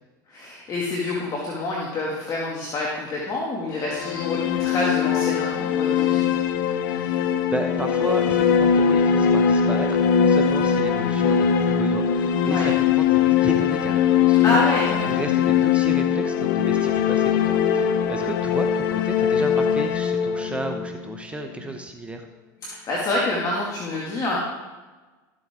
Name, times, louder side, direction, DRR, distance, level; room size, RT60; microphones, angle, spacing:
voice 1, 0.3-6.3 12.5-12.7 14.4-15.2 22.6-24.4, left 2 dB, 35° left, -4 dB, 2.4 m, -27 dB
sound 1, 3.8-21.7, left 7 dB, 75° left, 0.9 m, -21 dB
voice 2, 6.9-14.7 15.0-22.3, right 2 dB, 10° right, 4 dB, 0.9 m, -33 dB
13.5 x 7.7 x 3.8 m, 1.2 s
hypercardioid pair, 100°, 11 cm